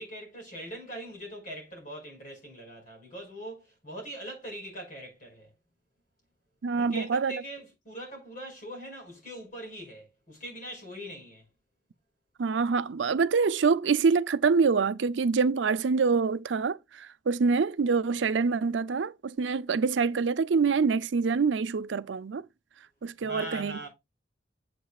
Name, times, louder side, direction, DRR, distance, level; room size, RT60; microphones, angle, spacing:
voice 1, 0.0-5.5 6.7-11.4 23.2-23.9, right 1 dB, 50° left, 5.3 m, -42 dB
voice 2, 6.6-7.4 12.4-22.5 23.0-23.8, right 5 dB, 90° right, 0.5 m, -26 dB
8.7 x 7.6 x 2.4 m
head